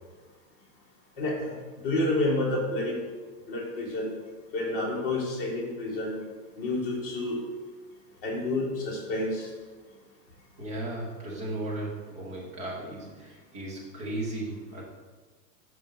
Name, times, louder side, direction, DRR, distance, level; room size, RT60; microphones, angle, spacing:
voice 1, 1.2-1.6 1.8-3.0 3.5-4.1 4.5-6.2 6.6-7.4 8.2-9.5, left 2 dB, 35° left, -3 dB, 1.4 m, -29 dB
voice 2, 10.6-14.8, right 2 dB, 15° right, -4 dB, 0.7 m, -36 dB
5.8 x 5.0 x 3.8 m, 1.4 s
supercardioid pair, 175°, 49 cm